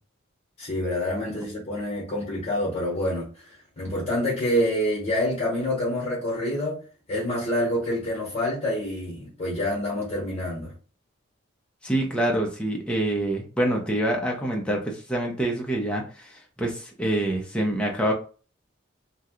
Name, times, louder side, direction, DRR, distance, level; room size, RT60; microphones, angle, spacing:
voice 1, 0.6-6.8 7.1-10.7, left 1 dB, 35° left, 0.9 m, -27 dB
voice 2, 11.8-18.1, right 1 dB, 5° left, 0.5 m, -26 dB
2.7 x 2.2 x 3.5 m
head